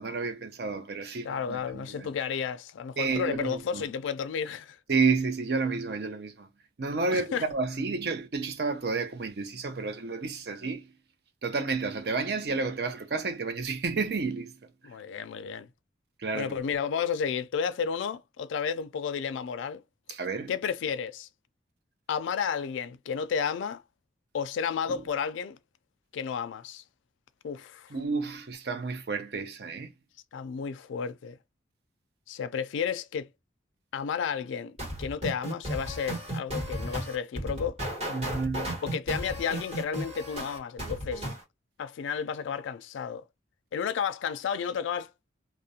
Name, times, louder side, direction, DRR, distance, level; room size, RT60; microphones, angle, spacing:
voice 1, 0.0-2.1 3.0-3.8 4.9-6.5 6.8-10.9 11.4-14.6 16.2-16.6 20.1-20.5 24.9-25.0 27.9-29.9 38.1-38.8, right 4 dB, 55° right, 0.5 m, -31 dB
voice 2, 1.2-4.8 7.1-7.4 14.8-15.7 16.3-19.8 20.5-21.3 22.1-23.8 24.3-25.6 26.1-26.8 27.4-28.0 30.3-31.4 32.3-33.3 33.9-37.8 38.8-41.3 41.8-43.3 43.7-45.3, left 7 dB, 85° left, 0.3 m, -32 dB
sound 1, 34.8-41.4, right 1 dB, 35° right, 1.2 m, -34 dB
2.4 x 2.0 x 2.7 m
head